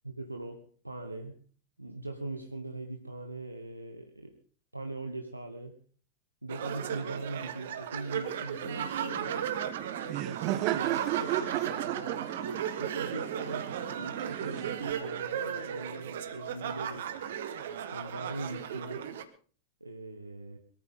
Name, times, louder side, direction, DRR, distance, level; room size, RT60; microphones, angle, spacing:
voice 1, 0.0-1.4 1.8-4.3 4.7-5.8 6.4-9.5 10.0-17.1 17.7-19.1 19.8-20.6, right 2 dB, 85° right, 4 dB, 1.3 m, -41 dB
sound 1, 6.5-19.2, right 9 dB, 60° right, 1.4 m, -36 dB
Laughter, 8.6-14.9, right 15 dB, 40° right, 0.6 m, -35 dB
22.0 x 14.0 x 3.8 m, 0.42 s
figure-of-eight pair, 90°, 0 cm